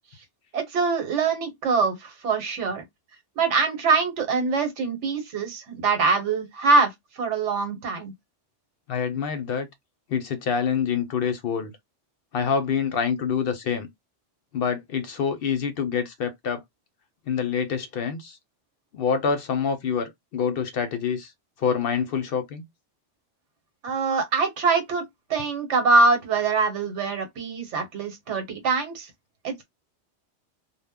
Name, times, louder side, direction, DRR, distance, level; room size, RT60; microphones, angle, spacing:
voice 1, 0.5-2.8 3.4-8.1 23.8-29.1 29.4-29.6, right 4 dB, 85° right, 1.1 m, -24 dB
voice 2, 8.9-9.7 10.1-11.7 12.3-13.9 14.5-16.6 17.3-18.4 18.9-21.3 21.6-22.6, left 6 dB, 65° left, 0.7 m, -26 dB
2.1 x 2.0 x 3.4 m
omnidirectional pair, 1.2 m